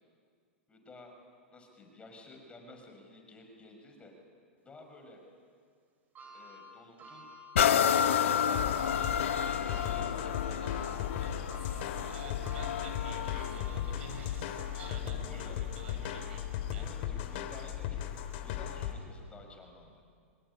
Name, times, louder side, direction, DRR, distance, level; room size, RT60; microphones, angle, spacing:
voice 1, 0.7-1.1 1.5-4.1 4.6-5.2 6.3-7.2 9.6-11.1 15.2-15.6 16.7-20.0, left 2 dB, 15° left, 3 dB, 6.1 m, -52 dB
sound 1, 6.2-14.5 15.0-15.1 16.3-16.4, left 1 dB, 25° right, 5.5 m, -51 dB
sound 2, 7.6-15.2 15.8-15.9, left 8 dB, 75° left, 1.5 m, -31 dB
sound 3, 8.5-18.9, left 10 dB, 55° left, 3.3 m, -37 dB
voice 2, 11.2-11.6 12.0-16.4 16.7-16.9, right 3 dB, 70° right, 4 dB, 7.3 m, -49 dB
26.0 x 22.0 x 9.9 m, 2.1 s
hypercardioid pair, 110°, 7 cm